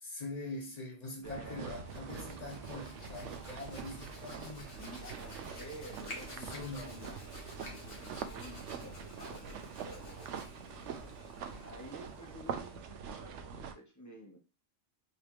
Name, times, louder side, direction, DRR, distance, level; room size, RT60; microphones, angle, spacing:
voice 1, 0.0-4.8 6.4-7.1, left 2 dB, 35° left, 1.1 m, -44 dB
voice 2, 1.2-1.8 4.8-7.2 7.6-14.4, equal, 15° left, 0.8 m, -51 dB
sound 1, 1.2-13.7, right 7 dB, 70° right, 0.9 m, -44 dB
sound 2, 1.3-8.6, right 2 dB, 40° right, 1.8 m, -61 dB
Hands, 1.5-12.9, left 1 dB, 50° left, 1.4 m, -51 dB
4.0 x 3.3 x 3.0 m
omnidirectional pair, 1.3 m